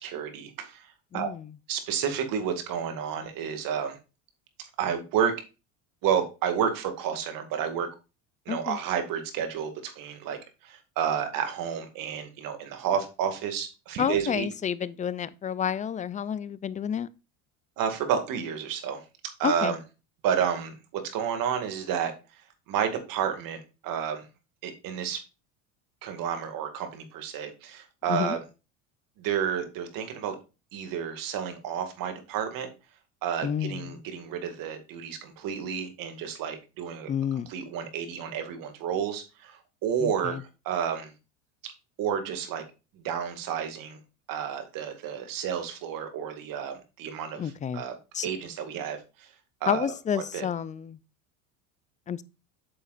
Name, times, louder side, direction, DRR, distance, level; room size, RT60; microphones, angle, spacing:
voice 1, 0.0-1.3 1.7-4.0 4.8-5.3 6.0-7.9 8.5-14.5 17.8-19.0 19.4-19.8 20.2-22.1 22.7-24.3 24.6-25.2 26.0-28.4 29.2-30.4 30.7-32.7 33.2-37.1 37.5-41.1 41.6-41.7 42.0-42.6 43.0-44.0 44.3-48.0 48.2-49.3 49.6-49.9 50.3-50.4, right 8 dB, 55° right, 2.2 m, -31 dB
voice 2, 1.1-1.4 8.5-8.8 14.0-17.1 19.4-19.7 28.1-28.4 33.4-34.0 37.1-37.5 40.0-40.4 47.4-47.8 48.1-48.3 49.7-51.0 52.1-52.2, left 8 dB, 20° left, 0.4 m, -30 dB
8.6 x 6.9 x 2.5 m
supercardioid pair, 95°, 39 cm